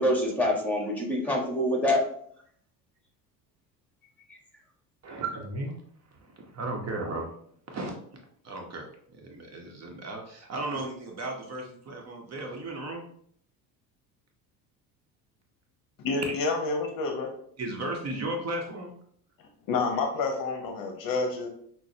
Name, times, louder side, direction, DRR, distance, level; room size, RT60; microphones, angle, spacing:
voice 1, 0.0-2.1 4.3-4.4, left 1 dB, 5° left, 0 dB, 1.3 m, -26 dB
voice 2, 5.0-5.8 6.1-7.3 7.7-7.9 8.4-8.9 9.1-13.1 16.2-16.3 17.6-19.0, right 2 dB, 35° right, 1 dB, 0.9 m, -35 dB
voice 3, 16.0-17.3 19.7-21.5, left 4 dB, 45° left, 3 dB, 0.8 m, -28 dB
5.9 x 2.0 x 2.8 m, 0.64 s
hypercardioid pair, 65°, 48 cm